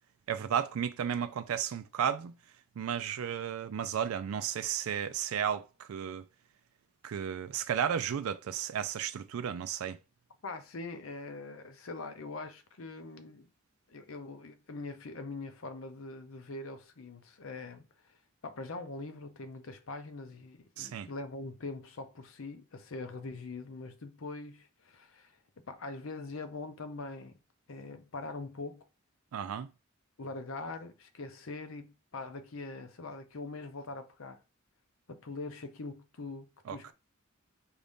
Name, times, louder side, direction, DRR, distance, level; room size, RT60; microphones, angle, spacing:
voice 1, 0.3-2.3 2.8-6.2 7.0-10.0 20.8-21.1 29.3-29.7 36.7-36.9, right 8 dB, 85° right, 0.4 m, -33 dB
voice 2, 10.4-13.5 13.9-18.2 18.4-25.4 25.7-27.4 27.7-28.9 30.2-34.4 35.1-36.9, left 3 dB, 70° left, 0.7 m, -43 dB
4.8 x 2.7 x 3.5 m
head